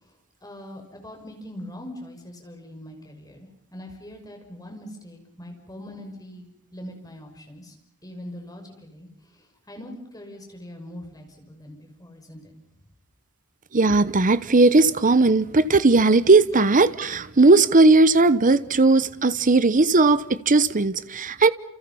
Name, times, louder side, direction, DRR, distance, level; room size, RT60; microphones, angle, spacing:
voice 1, 0.4-6.5 6.7-7.7 8.0-12.5, left 1 dB, 15° left, 6.2 m, -42 dB
voice 2, 13.7-21.5, right 3 dB, 35° right, 0.9 m, -17 dB
29.5 x 29.0 x 5.6 m
head